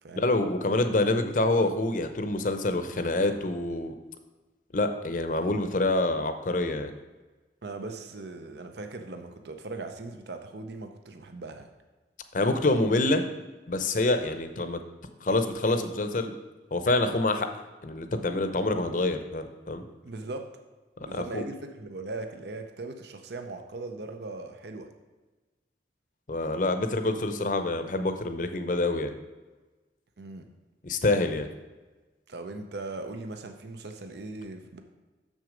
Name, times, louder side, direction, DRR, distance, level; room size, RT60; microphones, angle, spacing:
voice 1, 0.2-3.9 4.7-6.9 12.3-13.2 13.7-14.8 15.2-16.3 16.7-17.5 17.8-19.8 21.1-21.4 26.3-29.1 30.8-31.5, left 2 dB, 45° left, 8 dB, 0.6 m, -26 dB
voice 2, 7.6-11.7 20.0-20.5 21.0-24.9 30.2-30.5 32.3-34.8, right 3 dB, 70° right, 6 dB, 0.6 m, -39 dB
6.8 x 6.3 x 5.0 m, 1.2 s
head